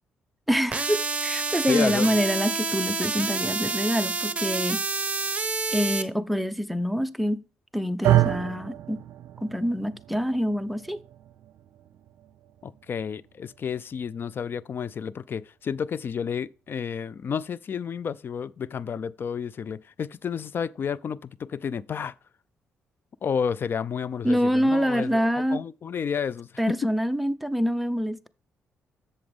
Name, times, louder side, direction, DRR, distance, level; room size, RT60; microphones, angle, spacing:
voice 1, 0.5-4.8 5.7-7.4 7.7-9.0 9.4-11.0 24.2-25.6 26.6-28.3, equal, ahead, 0.7 m, -26 dB
sound 1, 0.7-6.0, right 4 dB, 25° right, 1.0 m, -28 dB
voice 2, 1.7-2.2 12.6-22.1 23.2-25.2 25.5-26.9, left 7 dB, 50° left, 0.4 m, -31 dB
sound 2, 8.0-16.3, right 14 dB, 75° right, 0.5 m, -30 dB
7.8 x 6.9 x 3.5 m
supercardioid pair, 60°, 5 cm